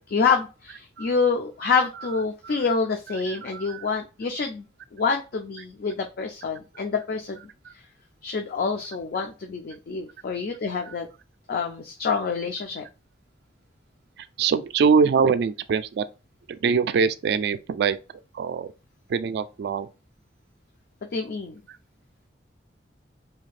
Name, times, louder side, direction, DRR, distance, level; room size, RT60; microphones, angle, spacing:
voice 1, 0.0-4.7 4.9-7.4 8.2-11.1 11.5-12.8 21.1-21.6, left 5 dB, 60° left, 0.4 m, -27 dB
voice 2, 3.1-3.9 7.6-7.7 10.9-11.0 14.2-16.1 16.5-18.0 18.3-18.7 19.1-19.9 21.7-21.8, right 5 dB, 70° right, 0.3 m, -24 dB
2.7 x 2.4 x 3.2 m
head